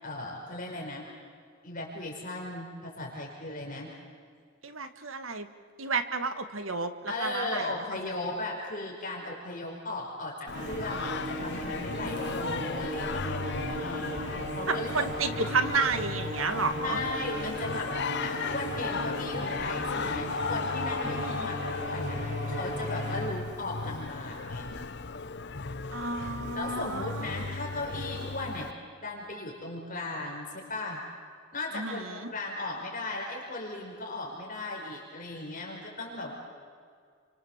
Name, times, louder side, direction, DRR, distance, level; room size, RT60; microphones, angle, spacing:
voice 1, 0.0-1.0 1.6-3.9 7.1-15.3 16.8-22.2 22.5-24.7 26.5-28.7 29.0-31.0 31.5-36.3, left 2 dB, 45° left, -2 dB, 5.2 m, -37 dB
voice 2, 4.6-5.5 5.8-7.7 14.7-17.0 21.1-21.5 25.9-27.5 31.7-32.3, right 4 dB, 90° right, 9 dB, 1.7 m, -31 dB
Singing, 10.5-28.7, left 4 dB, 60° left, 0.9 m, -36 dB
sound 1, 10.5-23.3, right 1 dB, 40° right, 5.9 m, -37 dB
30.0 x 25.0 x 7.4 m, 2.1 s
head